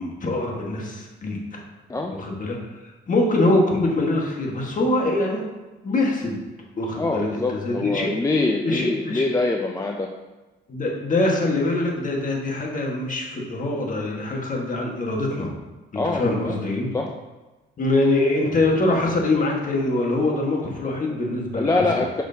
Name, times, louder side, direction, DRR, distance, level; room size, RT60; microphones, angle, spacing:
voice 1, 0.0-1.6 2.1-2.6 3.1-5.4 5.8-6.4 6.8-8.1 8.6-9.3 10.7-15.5 15.9-16.9 17.8-21.8, left 2 dB, 40° left, -1 dB, 1.5 m, -23 dB
voice 2, 7.0-10.1 16.0-16.6 16.9-17.1 21.5-22.2, left 3 dB, 15° left, 1 dB, 0.5 m, -24 dB
6.3 x 6.0 x 2.8 m, 1.1 s
cardioid pair, 90°, 20 cm